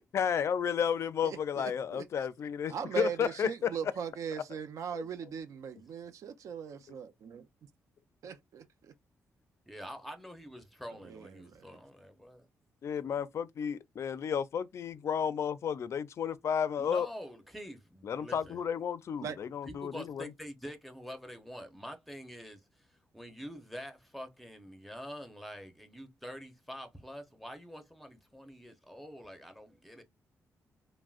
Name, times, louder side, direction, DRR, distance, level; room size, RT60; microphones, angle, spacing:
voice 1, 0.0-3.7 4.9-5.0 12.8-17.1 18.0-20.3, left 7 dB, 55° left, 0.4 m, -32 dB
voice 2, 1.2-2.0 2.7-7.4 8.2-8.9 11.0-11.7 19.2-19.4, right 6 dB, 65° right, 0.5 m, -39 dB
voice 3, 9.7-12.5 16.8-18.6 19.6-22.9 23.1-30.0, equal, ahead, 0.7 m, -46 dB
3.5 x 2.0 x 2.4 m
cardioid pair, 125°, 6 cm